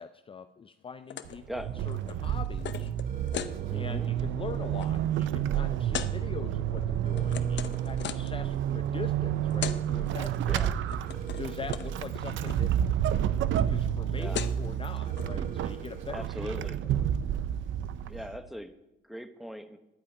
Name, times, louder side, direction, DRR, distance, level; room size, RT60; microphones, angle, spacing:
voice 1, 0.0-2.9 3.7-10.6 11.4-12.7 13.3-13.4 13.6-17.1, left 6 dB, 25° left, 10 dB, 0.4 m, -42 dB
sound 1, 1.1-1.4 1.7-3.6 4.1-4.3 4.6-4.9 5.9-6.1 6.8-8.4 9.2-9.3 9.5-9.8 10.1-10.6 10.9-11.5 11.7-11.9 12.1-12.6 13.9-14.0 14.1-14.7 15.1-15.3, left 10 dB, 65° left, 0.7 m, -38 dB
Vehicle / Accelerating revving vroom / Squeak, 1.3-18.5, right 10 dB, 75° right, 0.5 m, -30 dB
sound 2, 3.1-4.1 7.1-8.1 11.1-12.1 15.1-16.1, right 4 dB, 45° right, 1.6 m, -48 dB
voice 2, 3.7-4.1 10.5-10.8 14.0-14.4 16.1-16.8 18.1-18.7 19.0-19.8, equal, ahead, 8 dB, 0.9 m, -40 dB
11.5 x 5.0 x 8.6 m, 0.95 s
cardioid pair, 90°, 20 cm